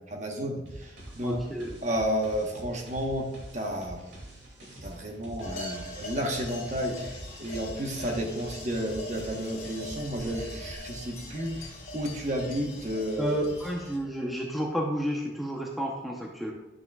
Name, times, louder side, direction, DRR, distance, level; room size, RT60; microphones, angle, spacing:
voice 1, 0.0-1.5 1.8-4.0 4.8-13.5, equal, 40° right, 1 dB, 1.1 m, -32 dB
sound 1, 0.7-10.8, right 1 dB, 75° right, 2.5 m, -45 dB
voice 2, 1.2-1.7 13.2-16.5, equal, ahead, -1 dB, 0.8 m, -31 dB
sound 2, 5.4-14.0, left 1 dB, 55° left, 2.5 m, -42 dB
11.0 x 6.7 x 2.3 m, 0.97 s
head